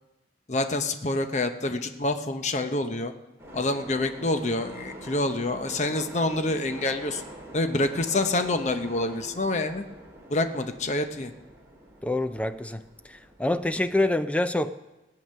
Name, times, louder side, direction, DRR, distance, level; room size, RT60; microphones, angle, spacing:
voice 1, 0.5-3.1 3.5-7.2 7.5-9.9 10.3-11.3, left 2 dB, 40° left, 8 dB, 0.8 m, -27 dB
sound 1, 3.4-14.0, right 1 dB, 15° right, 2.7 m, -45 dB
voice 2, 12.0-12.8 13.4-14.7, left 2 dB, 5° left, 11 dB, 0.4 m, -25 dB
18.0 x 8.6 x 6.6 m, 1.0 s
head